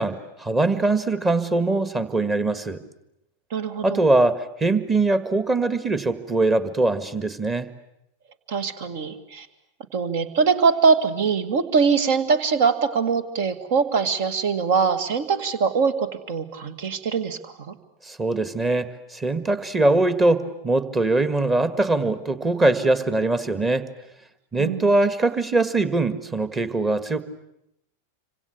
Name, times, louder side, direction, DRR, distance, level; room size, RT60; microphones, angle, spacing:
voice 1, 0.0-2.8 3.8-7.7 18.0-23.9 24.5-27.2, right 2 dB, 15° right, 12 dB, 1.7 m, -22 dB
voice 2, 3.5-4.0 8.5-9.5 9.9-17.7 24.6-24.9, right 5 dB, 50° right, 12 dB, 2.0 m, -22 dB
27.0 x 25.5 x 8.4 m, 0.81 s
figure-of-eight pair, 90°, 0 cm